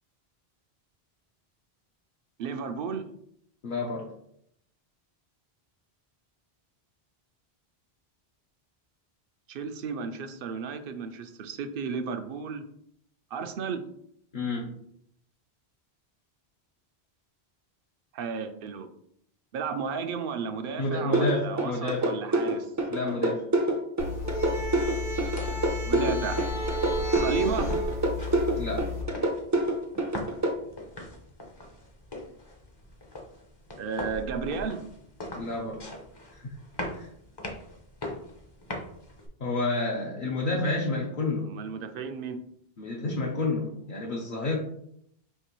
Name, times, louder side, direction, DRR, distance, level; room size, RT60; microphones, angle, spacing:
voice 1, 2.4-3.1 9.5-12.7 13.3-13.8 18.1-18.9 19.5-22.7 25.8-26.4 27.1-27.7 33.8-34.8 41.5-42.4, right 6 dB, 65° right, 8 dB, 0.7 m, -33 dB
voice 2, 3.6-4.1 14.3-14.8 20.8-22.1 22.9-23.4 28.6-28.9 35.3-35.8 36.3-36.6 36.9-37.1 39.4-41.6 42.8-44.6, left 2 dB, 55° left, -2 dB, 0.8 m, -30 dB
sound 1, 21.1-30.5, right 2 dB, 25° right, 0.4 m, -26 dB
sound 2, 24.0-29.0, left 1 dB, 80° left, 1.5 m, -32 dB
sound 3, 25.0-39.3, left 1 dB, 30° left, 0.7 m, -41 dB
5.7 x 2.9 x 3.0 m, 0.71 s
omnidirectional pair, 1.1 m